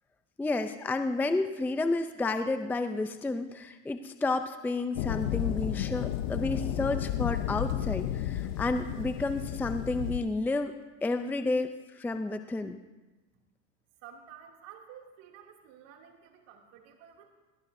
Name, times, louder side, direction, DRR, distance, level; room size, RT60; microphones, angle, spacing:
voice 1, 0.4-10.7 11.0-12.8, left 2 dB, 5° left, 9 dB, 0.5 m, -31 dB
sound 1, 5.0-10.2, left 12 dB, 75° left, 0.8 m, -32 dB
voice 2, 14.0-17.3, right 8 dB, 60° right, 1 dB, 2.8 m, -51 dB
21.0 x 15.0 x 2.7 m, 1.2 s
supercardioid pair, 115°, 37 cm